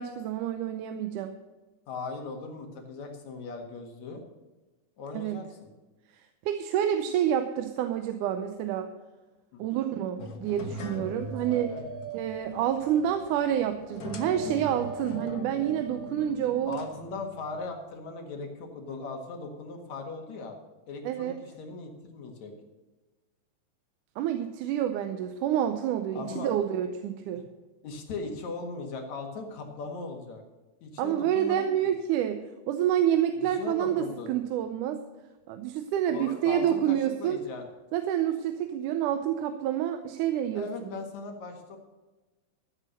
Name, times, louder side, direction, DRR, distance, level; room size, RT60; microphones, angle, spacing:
voice 1, 0.0-1.4 5.1-5.4 6.5-8.9 9.6-11.7 12.1-16.8 21.0-21.4 24.2-27.4 31.0-32.4 32.7-35.0 35.5-37.4 37.9-40.9, right 10 dB, 80° right, 8 dB, 2.2 m, -28 dB
voice 2, 1.9-4.2 5.0-5.7 9.5-9.6 11.5-11.9 16.7-20.5 20.9-22.5 26.1-26.6 27.8-30.4 30.8-31.7 33.6-34.3 36.1-37.7 40.5-41.8, left 3 dB, 65° left, 3 dB, 3.0 m, -38 dB
sound 1, 10.2-17.8, left 2 dB, 85° left, 0.8 m, -42 dB
Dog, 10.9-16.4, right 4 dB, 10° right, 1.4 m, -43 dB
14.0 x 7.5 x 6.4 m, 1.2 s
omnidirectional pair, 3.6 m